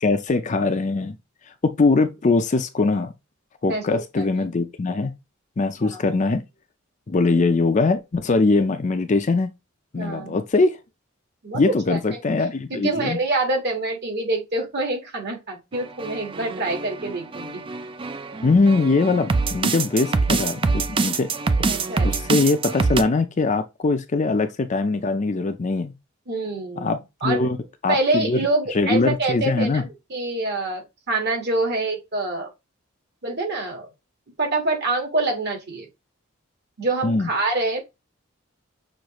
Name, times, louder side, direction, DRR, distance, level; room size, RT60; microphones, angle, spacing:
voice 1, 0.0-1.2 1.6-3.1 3.6-5.1 5.6-6.4 7.1-9.5 9.9-10.8 11.5-13.2 18.4-21.3 21.6-21.8 22.0-25.9 26.8-27.6 27.8-28.4 28.7-29.8 37.0-37.3, left 3 dB, 35° left, 0.5 m, -21 dB
voice 2, 3.6-4.5 5.8-6.2 7.3-7.4 9.9-10.4 11.4-12.2 12.7-17.6 21.6-22.3 26.3-26.9 27.2-27.5 27.9-29.8 30.1-32.5 33.2-33.9 34.4-35.8 36.8-37.8, right 2 dB, 55° right, 1.6 m, -26 dB
sound 1, 15.7-23.0, right 4 dB, 25° right, 0.3 m, -25 dB
6.3 x 2.6 x 3.0 m
head